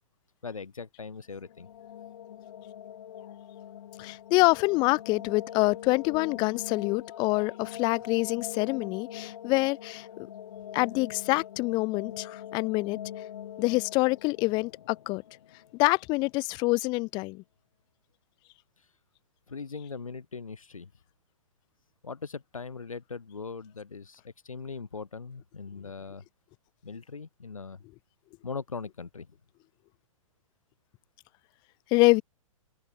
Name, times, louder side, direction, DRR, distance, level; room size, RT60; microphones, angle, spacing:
voice 1, 0.4-1.7 18.8-18.9 19.5-20.9 22.0-26.2 26.8-27.8 28.4-29.3, left 5 dB, 75° left, 7.5 m, -40 dB
sound 1, 1.3-16.2, left 10 dB, 55° left, 1.5 m, -43 dB
voice 2, 4.0-10.1 10.7-13.0 13.6-15.2 15.7-17.4 31.9-32.2, left 24 dB, 25° left, 0.6 m, -26 dB
figure-of-eight pair, 115°, 17 cm